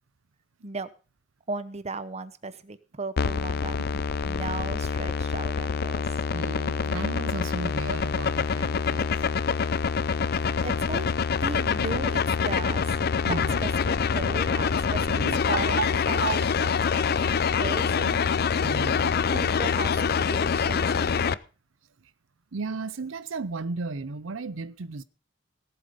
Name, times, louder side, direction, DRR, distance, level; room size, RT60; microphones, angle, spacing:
voice 1, 1.5-3.8 4.2-6.0 10.4-11.1 11.4-13.0 13.3-17.3 17.6-18.2 19.2-21.4, right 3 dB, 35° right, 0.9 m, -37 dB
sound 1, 3.2-21.3, left 6 dB, 50° left, 0.5 m, -25 dB
voice 2, 6.3-9.1 13.2-13.6 15.1-15.9 16.1-16.4 18.6-19.2 22.5-25.0, right 4 dB, 85° right, 0.7 m, -34 dB
17.5 x 7.8 x 5.2 m
head